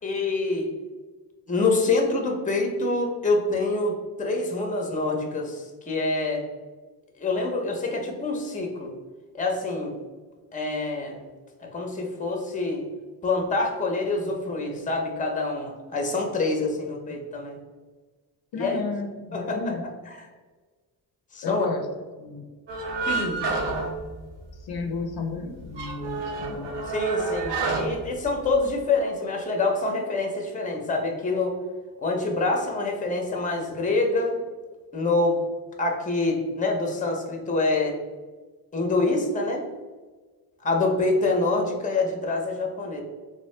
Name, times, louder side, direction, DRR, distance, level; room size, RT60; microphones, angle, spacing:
voice 1, 0.0-0.7 1.5-6.4 7.2-8.9 9.3-9.9 10.5-11.2 11.6-12.9 13.2-17.6 18.6-18.8 19.3-19.7 20.1-20.3 21.3-21.7 23.1-23.4 26.9-31.5 32.0-34.4 34.9-35.4 35.8-38.0 38.7-39.7 40.6-43.0, left 3 dB, 20° left, 2 dB, 0.6 m, -26 dB
voice 2, 18.5-19.8 21.4-21.8 22.2-22.4 24.6-26.7, left 4 dB, 60° left, 4 dB, 0.5 m, -32 dB
sound 1, 22.7-24.8 25.1-25.2 25.6-28.8, right 3 dB, 85° right, 0.8 m, -29 dB
3.6 x 2.7 x 3.2 m, 1.4 s
cardioid pair, 130°, 42 cm